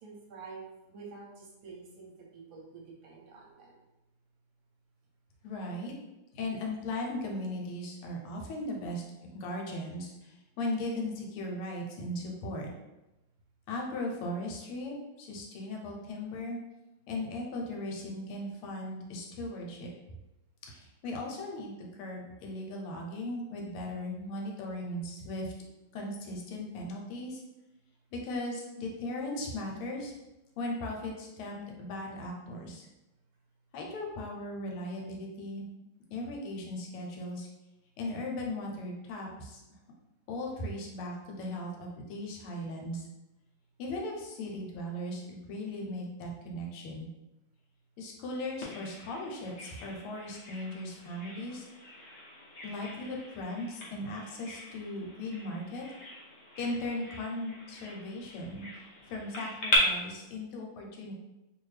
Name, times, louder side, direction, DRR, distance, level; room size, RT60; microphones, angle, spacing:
voice 1, 0.0-3.8, right 4 dB, 70° right, -2 dB, 1.3 m, -48 dB
voice 2, 5.4-5.9 6.3-12.7 13.7-16.6 17.1-19.9 20.7-25.5 25.9-27.4 28.1-30.1 30.6-32.9 33.7-35.6 36.1-37.5 38.0-39.6 40.3-43.1 43.8-47.1 48.0-51.7 52.6-55.8 56.6-61.1, left 1 dB, 80° left, 0 dB, 1.6 m, -38 dB
Bird vocalization bird call bird song, 48.6-59.8, left 1 dB, 65° left, 0.7 m, -40 dB
3.3 x 2.5 x 3.2 m, 0.97 s
omnidirectional pair, 2.4 m